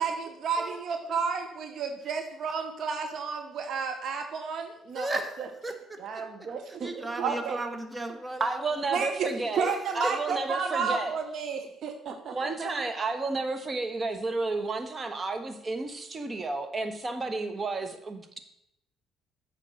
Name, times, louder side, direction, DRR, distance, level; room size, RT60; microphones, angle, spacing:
voice 1, 0.0-5.5 6.0-7.6 8.9-9.3 9.6-12.9, right 5 dB, 60° right, 6 dB, 0.9 m, -32 dB
voice 2, 0.6-1.1 4.9-8.8 9.5-10.2, right 1 dB, 20° right, 7 dB, 1.3 m, -36 dB
voice 3, 8.4-9.6 9.9-11.1 12.3-18.4, right 3 dB, 35° right, 8 dB, 1.3 m, -31 dB
7.6 x 5.3 x 6.4 m, 0.81 s
hypercardioid pair, 55°, 0 cm